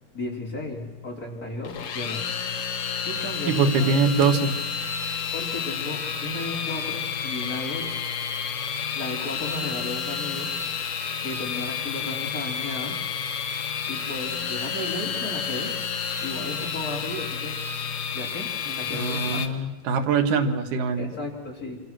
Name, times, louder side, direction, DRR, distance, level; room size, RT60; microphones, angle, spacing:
voice 1, 0.1-2.2 3.0-4.0 5.3-8.0 8.9-10.5 11.2-13.0 13.9-15.7 16.2-17.6 18.1-19.5 21.0-21.8, left 2 dB, 25° left, -1 dB, 4.4 m, -34 dB
sound 1, 1.6-19.5, left 6 dB, 50° left, 2.0 m, -30 dB
voice 2, 3.5-4.5 18.9-21.1, right 5 dB, 65° right, 6 dB, 3.1 m, -23 dB
27.0 x 27.0 x 6.3 m, 1.0 s
omnidirectional pair, 4.4 m